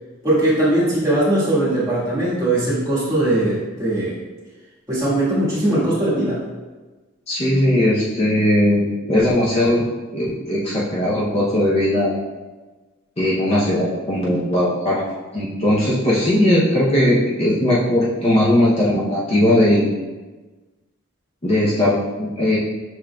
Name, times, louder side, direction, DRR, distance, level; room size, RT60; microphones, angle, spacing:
voice 1, 0.2-4.2 4.9-6.5, right 1 dB, 15° right, -9 dB, 1.4 m, -20 dB
voice 2, 7.3-9.8 10.1-12.1 13.2-15.0 15.3-19.9 21.4-22.6, left 1 dB, 30° left, -7 dB, 0.6 m, -18 dB
5.9 x 3.7 x 2.2 m, 1.3 s
head